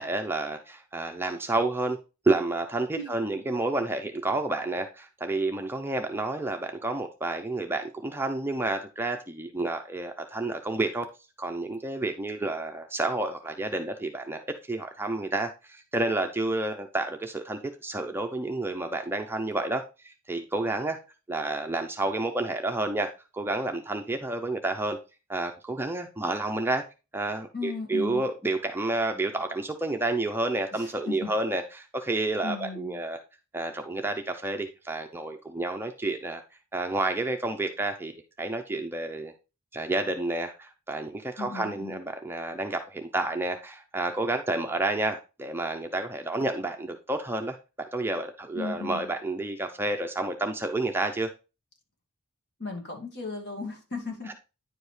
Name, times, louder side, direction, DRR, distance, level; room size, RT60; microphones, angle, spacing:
voice 1, 0.0-2.0 2.2-11.1 11.4-14.4 14.7-21.0 21.3-25.0 25.3-26.8 27.1-33.2 33.5-36.4 36.7-39.3 39.7-47.6 47.9-51.3, right 2 dB, 10° right, 0.6 m, -30 dB
voice 2, 27.5-28.3 30.7-31.3 32.4-33.0 41.4-42.0 48.5-49.1 52.6-54.3, left 4 dB, 50° left, 1.9 m, -36 dB
9.8 x 5.1 x 3.2 m
head